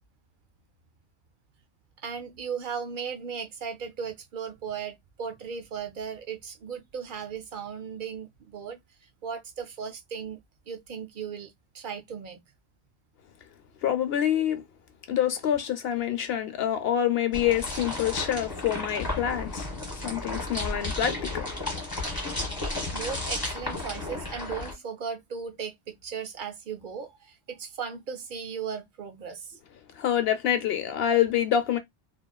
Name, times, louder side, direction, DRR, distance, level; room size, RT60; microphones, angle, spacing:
voice 1, 2.0-8.8 9.2-10.4 10.7-12.4 22.4-22.5 22.9-29.6, right 6 dB, 60° right, 0.6 m, -37 dB
voice 2, 13.8-14.6 15.1-19.7 20.0-21.5 29.9-31.8, left 10 dB, 75° left, 0.9 m, -26 dB
sound 1, 17.3-24.7, left 2 dB, 20° left, 1.3 m, -33 dB
3.0 x 2.3 x 2.3 m
omnidirectional pair, 1.0 m